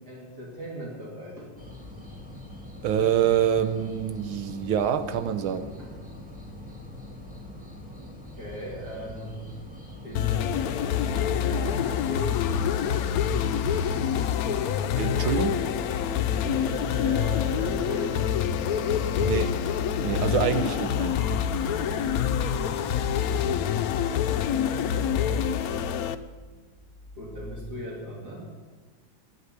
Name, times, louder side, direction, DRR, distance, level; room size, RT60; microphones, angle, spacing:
voice 1, 0.0-1.5 5.8-5.9 8.3-9.5 10.0-13.1 16.4-19.0 27.2-28.5, equal, 50° right, -4 dB, 3.6 m, -38 dB
sound 1, 1.6-14.3, left 1 dB, 5° right, 1.9 m, -43 dB
voice 2, 2.8-5.7 14.9-15.7 19.2-19.6 20.0-21.2, right 9 dB, 90° right, 10 dB, 1.7 m, -26 dB
sound 2, 10.1-26.1, left 8 dB, 75° left, 0.8 m, -26 dB
sound 3, 14.7-27.7, equal, 40° left, 1.6 m, -43 dB
12.0 x 8.7 x 9.4 m, 1.4 s
omnidirectional pair, 2.2 m